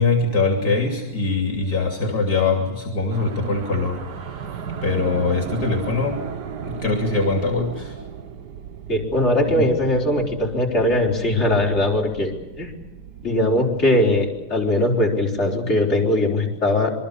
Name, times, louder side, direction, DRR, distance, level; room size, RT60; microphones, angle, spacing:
voice 1, 0.0-4.5 4.8-6.2 6.6-8.0, left 3 dB, 65° left, 3 dB, 3.5 m, -22 dB
sound 1, 3.1-15.7, right 7 dB, 85° right, 2.0 m, -36 dB
voice 2, 8.9-12.3 12.6-12.7 13.2-16.9, left 1 dB, 40° left, -1 dB, 4.9 m, -20 dB
26.5 x 22.5 x 7.1 m, 1.1 s
omnidirectional pair, 1.7 m